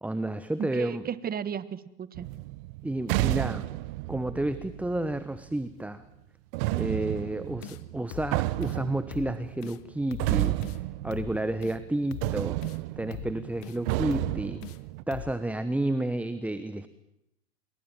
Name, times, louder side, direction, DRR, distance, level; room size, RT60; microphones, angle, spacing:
voice 1, 0.0-1.1 2.8-3.7 4.1-6.0 6.7-12.6 13.0-14.6 15.1-16.9, right 1 dB, 5° right, 13 dB, 1.1 m, -31 dB
voice 2, 0.6-2.3, right 8 dB, 25° right, 16 dB, 1.4 m, -34 dB
sound 1, 2.2-5.5 6.5-11.9 12.2-15.0, right 19 dB, 60° right, 1.0 m, -32 dB
sound 2, 7.6-7.8 8.1-8.3 8.6-8.8 9.1-9.3 9.6-9.8 10.1-10.3 10.6-10.8 11.1-11.3 11.6-11.8 12.1-12.3 12.6-12.8 13.1-13.3 13.6-13.8 14.1-14.3 14.6-14.8 15.1-15.3, left 17 dB, 55° left, 1.3 m, -41 dB
26.5 x 22.5 x 7.5 m, 0.83 s
hypercardioid pair, 90°, 33 cm